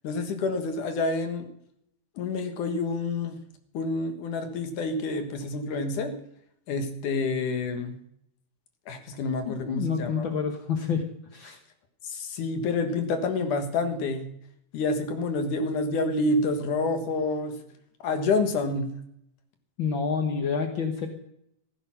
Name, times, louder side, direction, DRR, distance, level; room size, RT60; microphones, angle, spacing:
voice 1, 0.0-1.5 2.2-3.4 3.7-6.1 6.7-7.9 8.9-10.3 12.0-14.3 14.7-17.6 18.0-18.9, left 3 dB, 65° left, 6 dB, 2.9 m, -28 dB
voice 2, 9.4-11.0 11.3-11.6 19.8-21.1, left 6 dB, 80° left, 6 dB, 1.1 m, -28 dB
15.0 x 11.0 x 5.9 m, 0.71 s
omnidirectional pair, 4.0 m